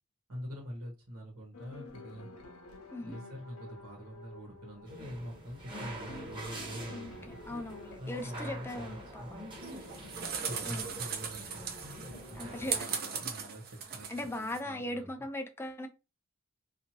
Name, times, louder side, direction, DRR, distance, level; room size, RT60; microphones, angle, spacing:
voice 1, 0.3-2.3 3.0-7.4 8.0-9.3 10.5-15.1, equal, 80° right, 1.1 m, -45 dB
sound 1, 1.5-8.0, left 2 dB, 85° left, 0.8 m, -50 dB
sound 2, 4.9-12.8, right 1 dB, 20° right, 1.0 m, -46 dB
voice 2, 6.9-9.4 10.6-10.8 12.3-12.9 14.1-15.9, left 1 dB, 10° left, 0.5 m, -39 dB
sound 3, 9.6-14.6, right 6 dB, 45° right, 0.6 m, -38 dB
2.7 x 2.6 x 2.7 m
head